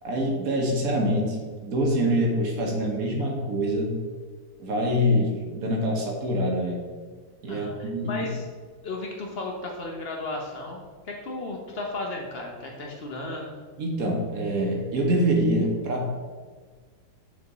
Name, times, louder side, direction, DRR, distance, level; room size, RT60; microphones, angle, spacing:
voice 1, 0.0-1.4 1.6-4.0 4.6-6.8 7.4-8.3 13.8-16.1, equal, 50° right, 0 dB, 1.3 m, -25 dB
voice 2, 7.5-8.5 8.8-13.5, left 2 dB, 80° left, 0 dB, 0.5 m, -34 dB
6.7 x 4.6 x 4.0 m, 1.5 s
omnidirectional pair, 2.1 m